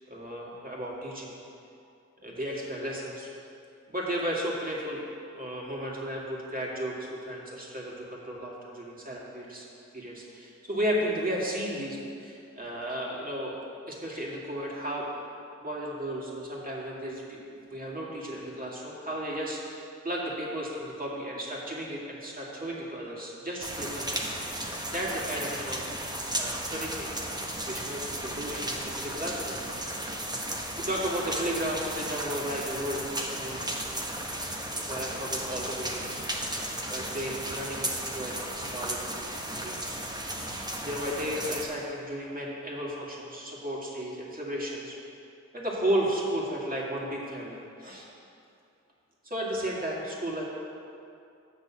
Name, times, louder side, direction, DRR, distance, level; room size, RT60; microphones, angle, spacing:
voice 1, 0.1-1.3 2.2-3.3 3.9-5.0 5.4-9.7 9.9-13.6 13.9-15.1 15.6-24.3 24.9-27.1 27.6-29.6 30.8-33.6 34.9-36.2 36.9-40.0 40.8-45.0 45.5-48.1 49.2-50.5, equal, 30° right, -4 dB, 2.1 m, -34 dB
sound 1, 23.6-41.7, right 1 dB, 15° right, 1.1 m, -35 dB
6.9 x 6.1 x 7.1 m, 2.6 s
cardioid pair, 75°, 30 cm